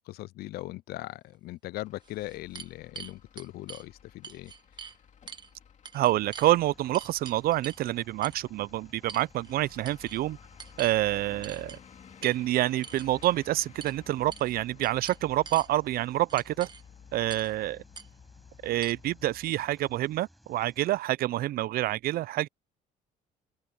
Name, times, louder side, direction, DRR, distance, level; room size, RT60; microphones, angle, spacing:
voice 1, 0.0-4.5, left 17 dB, 65° left, 0.4 m, -40 dB
sound 1, 1.3-1.4 2.0-3.8 4.2-5.0 5.3-5.5 5.8-6.5 6.9-7.8 8.2-8.4 9.1-9.6 9.8-10.2 10.6-11.0 11.4-11.8 12.2-12.4 12.8-13.3 13.8-14.0 14.3-14.5 14.8-15.7 16.3-16.8 17.3-17.5 17.9-18.1 18.8-18.9, right 6 dB, 25° right, 1.4 m, -45 dB
Truck / Idling, 1.8-19.5, left 7 dB, 45° left, 2.5 m, -54 dB
voice 2, 5.9-10.4 10.8-11.8 12.2-16.7 17.1-17.8 18.6-22.5, right 15 dB, 65° right, 0.4 m, -27 dB
sound 2, 6.1-21.0, equal, ahead, 7.6 m, -60 dB
open air
cardioid pair, 110°, 17 cm